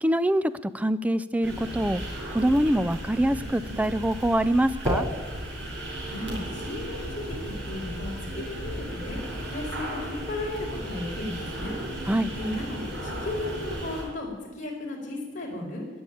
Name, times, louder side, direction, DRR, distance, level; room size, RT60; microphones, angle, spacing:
voice 1, 0.0-2.0 2.3-5.1 12.1-12.3, right 1 dB, 10° right, 14 dB, 0.5 m, -24 dB
sound 1, 1.4-14.0, right 1 dB, 80° right, 5.6 m, -34 dB
voice 2, 6.1-9.2 9.5-11.8 12.4-15.8, left 1 dB, 45° left, -2 dB, 4.5 m, -35 dB
20.0 x 7.1 x 9.2 m, 1.2 s
head